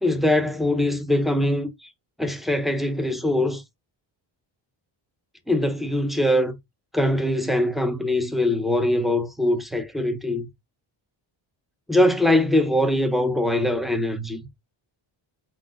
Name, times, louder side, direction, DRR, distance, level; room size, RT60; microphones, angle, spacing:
voice 1, 0.0-1.9 2.2-3.6 5.5-6.5 6.9-10.5 11.9-14.4, left 1 dB, ahead, 0.3 m, -22 dB
4.9 x 3.8 x 2.4 m
wide cardioid pair, 175°, 47 cm